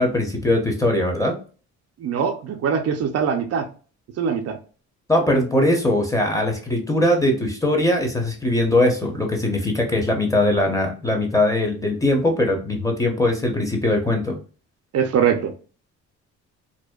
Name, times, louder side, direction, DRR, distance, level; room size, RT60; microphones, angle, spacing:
voice 1, 0.0-1.3 5.1-14.4, left 1 dB, 10° left, 2 dB, 0.7 m, -21 dB
voice 2, 2.0-3.7 4.2-4.6 14.9-15.5, right 7 dB, 55° right, 5 dB, 0.5 m, -22 dB
2.6 x 2.1 x 2.2 m, 0.38 s
cardioid pair, 90°, 30 cm